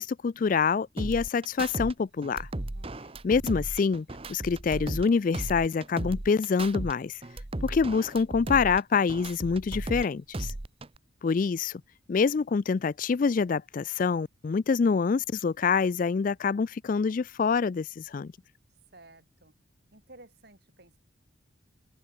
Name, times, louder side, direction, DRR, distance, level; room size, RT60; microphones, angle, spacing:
voice 1, 0.0-2.5 3.2-7.2 7.6-10.5 11.2-11.8 12.1-18.3, left 5 dB, 40° left, 0.3 m, -26 dB
sound 1, 1.0-1.9 2.2-5.1 5.3-6.9 7.2-10.0 10.3-11.0, right 1 dB, 30° right, 0.9 m, -35 dB
voice 2, 2.7-3.2 18.9-19.5 19.9-21.0, right 2 dB, 50° right, 5.7 m, -54 dB
open air
head